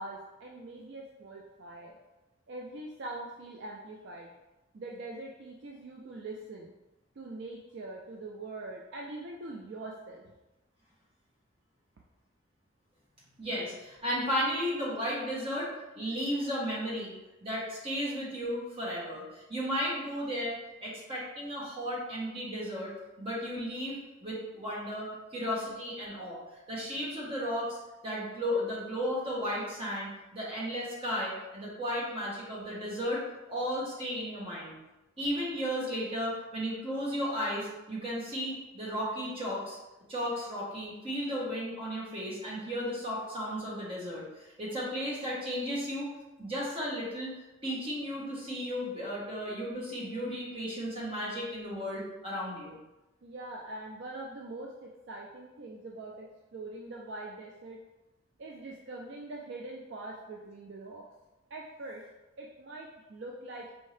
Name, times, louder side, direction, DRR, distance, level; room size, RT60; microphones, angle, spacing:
voice 1, 0.0-2.0 2.5-4.3 4.7-6.7 7.2-10.2 53.2-57.8 58.4-61.0 61.5-62.0 62.4-63.7, right 2 dB, 60° right, -1 dB, 0.4 m, -43 dB
voice 2, 13.4-17.1 17.4-22.9 23.2-26.4 26.7-27.8 28.0-33.2 33.5-34.7 35.2-39.8 40.1-44.2 44.6-46.1 46.4-47.3 47.6-52.8, equal, 25° right, -6 dB, 1.2 m, -34 dB
4.3 x 2.7 x 3.2 m, 1.0 s
head